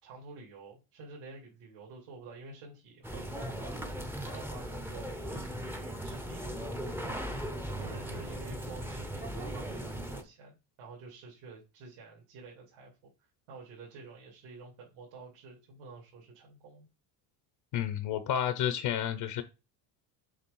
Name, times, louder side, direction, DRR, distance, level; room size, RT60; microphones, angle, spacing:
voice 1, 0.0-3.8 4.2-6.4 7.0-7.2 7.6-12.9 13.2-16.9, right 3 dB, 70° right, 3.3 m, -49 dB
sound 1, 3.0-10.2, equal, 5° right, 0.7 m, -38 dB
voice 2, 17.7-19.4, left 10 dB, 55° left, 0.9 m, -31 dB
7.4 x 3.4 x 5.5 m
cardioid pair, 150°, 49 cm